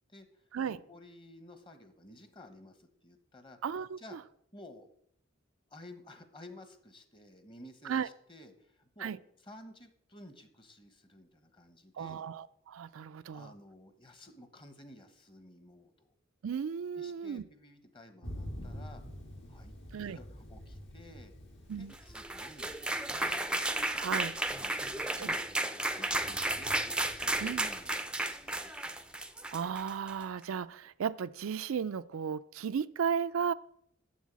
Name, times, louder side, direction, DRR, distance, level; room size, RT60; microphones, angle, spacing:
voice 1, 0.1-3.6 4.0-4.2 4.5-4.9 5.7-9.1 9.4-12.3 13.3-16.1 16.9-19.0 19.5-19.7 20.0-21.3 21.8-22.8 23.1-23.4 24.0-25.4 25.7-26.8 27.2-29.0, left 1 dB, 25° left, 8 dB, 1.1 m, -54 dB
voice 2, 3.6-4.2 7.8-8.1 9.0-9.2 12.0-13.5 16.4-17.4 19.9-20.2 21.7-21.9 24.0-24.4 25.2-25.3 27.4-27.7 29.5-33.5, right 7 dB, 85° right, 13 dB, 0.4 m, -35 dB
Thunder, 18.2-30.1, equal, 60° left, 1.8 m, -49 dB
sound 1, 21.9-30.2, right 1 dB, 5° right, 0.5 m, -33 dB
7.4 x 7.2 x 7.5 m, 0.70 s
head